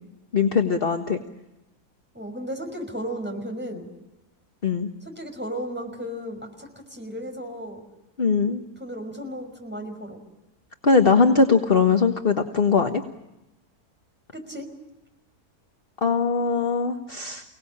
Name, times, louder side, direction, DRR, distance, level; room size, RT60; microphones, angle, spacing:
voice 1, 0.3-1.2 4.6-4.9 8.2-8.6 10.8-13.0 16.0-17.4, left 5 dB, 35° left, 4 dB, 1.5 m, -20 dB
voice 2, 2.1-3.9 5.0-7.8 8.8-10.2 14.3-14.7, equal, 5° right, 3 dB, 5.4 m, -34 dB
29.5 x 19.0 x 8.7 m, 0.96 s
omnidirectional pair, 1.7 m